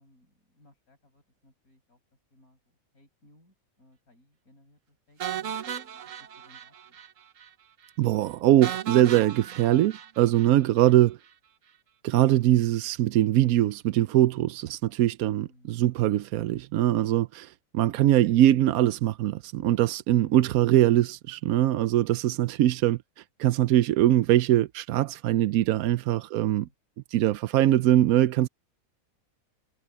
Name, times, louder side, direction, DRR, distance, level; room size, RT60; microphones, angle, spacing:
voice 1, 0.0-2.0 2.3-5.6 6.0-7.0 15.3-15.8 26.3-26.7, left 1 dB, 85° left, 6.9 m, -61 dB
sound 1, 5.2-7.1 7.4-7.5 7.8-7.9 8.6-10.9, right 9 dB, 65° right, 1.3 m, -36 dB
voice 2, 8.0-11.2 12.0-26.7 27.1-28.5, right 13 dB, 85° right, 1.0 m, -22 dB
omnidirectional pair, 1.5 m